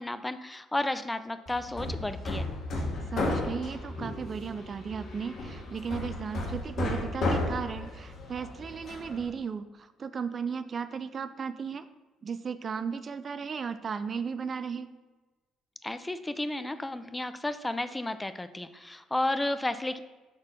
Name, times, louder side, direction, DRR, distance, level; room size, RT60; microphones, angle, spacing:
voice 1, 0.0-2.5 15.8-20.0, left 1 dB, 15° left, 11 dB, 0.5 m, -32 dB
Hammer, 1.5-9.3, left 2 dB, 55° left, 1.6 m, -34 dB
voice 2, 3.1-11.9 12.2-14.9, right 6 dB, 45° right, 13 dB, 0.4 m, -35 dB
6.2 x 4.3 x 5.8 m, 1.2 s
hypercardioid pair, 50°, 0 cm